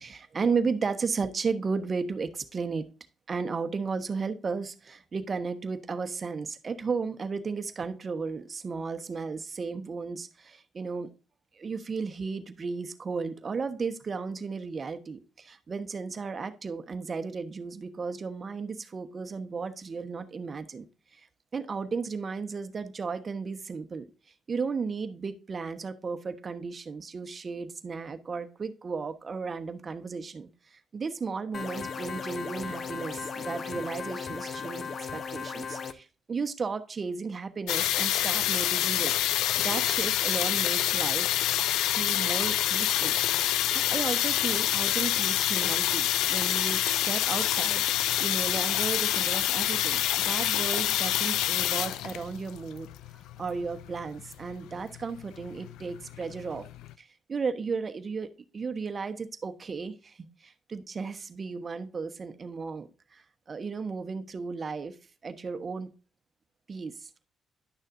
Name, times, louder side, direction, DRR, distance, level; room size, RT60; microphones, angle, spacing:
voice 1, 0.0-2.9 3.3-11.1 11.5-20.9 21.1-21.2 21.5-24.1 24.5-39.1 39.6-41.3 41.9-43.1 43.7-52.9 53.4-56.7 57.0-65.0 65.2-65.9 66.7-67.1, right 4 dB, 40° right, 1.1 m, -34 dB
sound 1, 31.5-35.9, left 5 dB, 50° left, 1.0 m, -36 dB
sound 2, 37.7-56.9, left 12 dB, 90° left, 0.4 m, -27 dB
11.5 x 6.5 x 2.6 m
cardioid pair, 90°, 0 cm